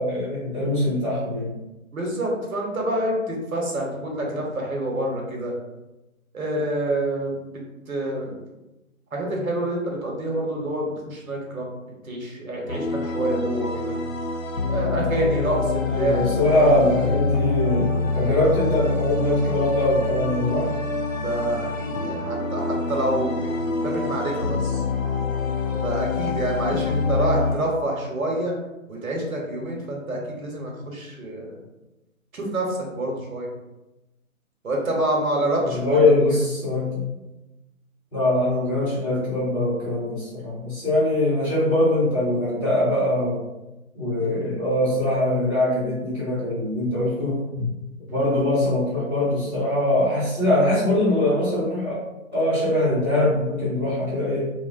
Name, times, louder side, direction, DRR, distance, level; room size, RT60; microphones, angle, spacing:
voice 1, 0.0-1.6 15.8-20.7 26.7-26.8 35.6-37.0 38.1-43.4 43.9-47.7 48.1-52.0 52.3-54.5, left 1 dB, 10° left, -15 dB, 0.7 m, -22 dB
voice 2, 1.9-5.5 6.3-8.4 9.1-11.7 12.0-14.0 14.7-16.2 16.5-16.7 21.2-24.8 25.7-28.6 28.9-31.6 32.3-33.5 34.6-36.0 44.2-44.4 48.1-48.3, right 1 dB, 75° right, -1 dB, 0.9 m, -27 dB
sound 1, 12.7-27.5, left 4 dB, 65° left, 0.5 m, -26 dB
2.5 x 2.1 x 2.4 m, 0.99 s
figure-of-eight pair, 160°, 42 cm